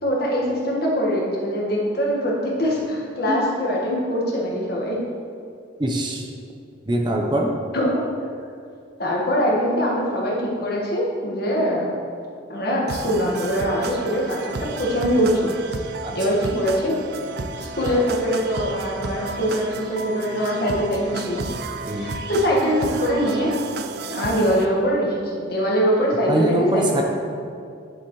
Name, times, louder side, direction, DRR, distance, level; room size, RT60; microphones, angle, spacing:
voice 1, 0.0-5.0 7.7-8.0 9.0-11.9 12.5-15.5 16.1-16.9 17.6-21.4 22.0-23.6 24.1-27.0, equal, 50° left, -4 dB, 1.6 m, -23 dB
voice 2, 5.8-6.2 6.9-7.5 16.0-16.2 21.9-22.1 26.3-27.0, right 1 dB, 20° right, 1 dB, 0.8 m, -23 dB
sound 1, 12.9-24.7, right 3 dB, 50° right, 0.4 m, -33 dB
9.4 x 7.1 x 3.2 m, 2.4 s
head